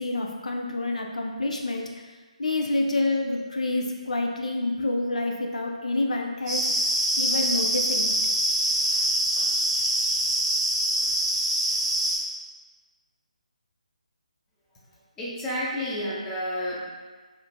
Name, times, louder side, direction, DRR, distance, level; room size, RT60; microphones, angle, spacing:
voice 1, 0.0-1.9 2.4-6.6 7.2-8.2, left 2 dB, 70° left, 1 dB, 0.4 m, -27 dB
sound 1, 6.5-12.2, right 1 dB, 15° right, 0.8 m, -24 dB
voice 2, 15.2-16.9, equal, 10° left, -7 dB, 0.5 m, -30 dB
4.4 x 2.4 x 2.2 m, 1.4 s
figure-of-eight pair, 150°, 4 cm